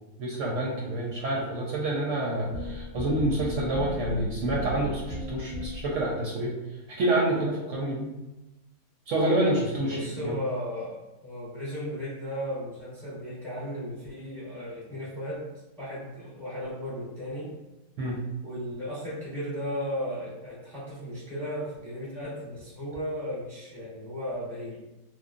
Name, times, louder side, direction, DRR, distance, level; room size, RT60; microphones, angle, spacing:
voice 1, 0.2-6.5 6.9-8.1 9.1-10.3 18.0-18.2, right 1 dB, 70° right, -3 dB, 0.8 m, -28 dB
sound 1, 2.5-6.1, equal, 40° left, 0.9 m, -36 dB
voice 2, 9.8-15.5 15.8-17.5 18.4-24.8, equal, ahead, -8 dB, 0.8 m, -35 dB
3.1 x 2.0 x 2.4 m, 1.0 s
omnidirectional pair, 1.5 m